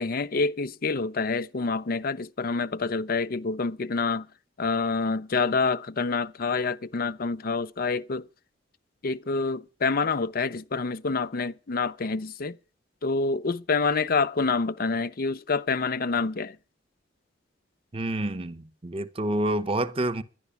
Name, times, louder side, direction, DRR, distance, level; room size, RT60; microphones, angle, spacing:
voice 1, 0.0-4.3 4.6-8.2 9.0-12.6 13.0-16.6, left 4 dB, 55° left, 0.6 m, -27 dB
voice 2, 17.9-20.2, right 1 dB, 30° right, 0.8 m, -28 dB
11.5 x 11.0 x 7.0 m
head